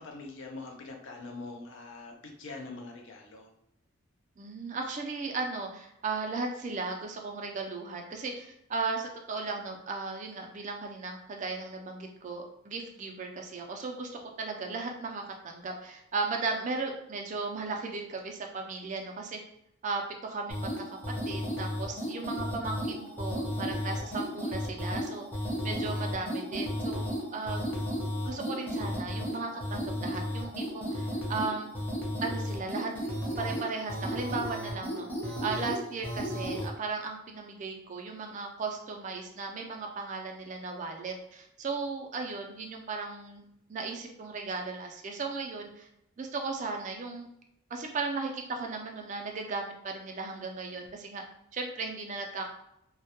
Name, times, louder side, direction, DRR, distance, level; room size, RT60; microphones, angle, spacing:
voice 1, 0.0-3.5, left 3 dB, 60° left, 3 dB, 0.4 m, -43 dB
voice 2, 4.4-19.4 19.8-21.0 21.3-25.2 25.6-27.7 28.2-31.7 32.2-32.9 33.4-43.4 43.7-45.9 46.2-47.3 47.7-51.2 51.5-52.5, right 4 dB, 35° right, 2 dB, 0.3 m, -36 dB
sound 1, 20.5-36.7, equal, 10° left, 0.5 m, -34 dB
2.2 x 2.0 x 2.8 m, 0.80 s
head